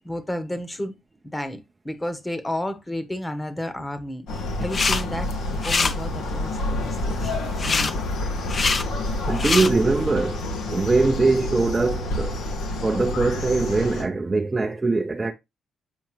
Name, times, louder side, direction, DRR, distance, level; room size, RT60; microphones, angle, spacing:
voice 1, 0.0-0.9 1.3-4.3 4.6-5.3 5.6-8.0 10.7-10.9, left 1 dB, 15° left, 1.1 m, -32 dB
sound 1, 4.3-14.0, left 1 dB, 90° left, 2.1 m, -28 dB
sound 2, 4.6-5.0 5.3-5.9 7.6-7.9 8.4-8.8 9.3-9.7, left 4 dB, 40° left, 0.7 m, -23 dB
voice 2, 9.3-12.4 12.8-15.3, right 3 dB, 25° right, 0.6 m, -22 dB
7.6 x 5.3 x 3.1 m
cardioid pair, 90°, 0 cm